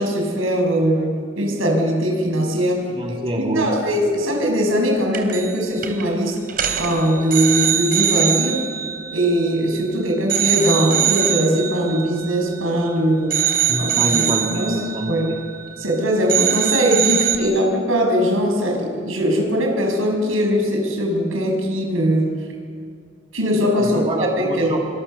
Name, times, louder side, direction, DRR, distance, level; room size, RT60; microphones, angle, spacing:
voice 1, 0.0-2.8 3.3-6.3 6.8-8.6 9.1-13.4 13.8-14.2 14.5-14.8 15.1-15.3 15.8-22.3 23.3-24.0 24.4-24.8, equal, 85° right, 1 dB, 6.9 m, -20 dB
voice 2, 2.9-3.8 13.7-15.4 23.8-24.8, right 1 dB, 30° right, 0 dB, 2.5 m, -25 dB
sound 1, 5.1-5.6 5.8-6.0 6.5-9.9 10.3-12.9 13.3-16.0 16.3-17.4, right 10 dB, 50° right, 3.2 m, -23 dB
26.5 x 24.5 x 7.0 m, 2.1 s
head